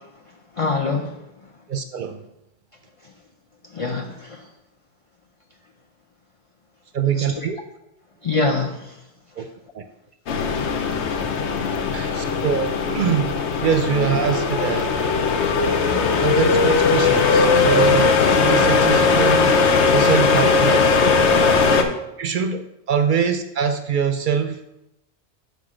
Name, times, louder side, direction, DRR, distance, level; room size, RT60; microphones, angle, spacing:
voice 1, 0.6-1.2 3.7-4.4 7.2-7.3 8.2-9.0 12.2-12.4, left 3 dB, 40° left, 2 dB, 0.5 m, -24 dB
voice 2, 1.7-2.2 6.9-7.6 9.4-9.5 9.7-9.8 11.9-13.3 13.6-15.1 16.2-19.6 19.9-21.0 21.5-24.6, right 7 dB, 60° right, 8 dB, 0.6 m, -24 dB
sound 1, 10.3-21.8, left 4 dB, 80° left, 1.0 m, -18 dB
6.1 x 5.3 x 4.9 m, 0.87 s
omnidirectional pair, 1.1 m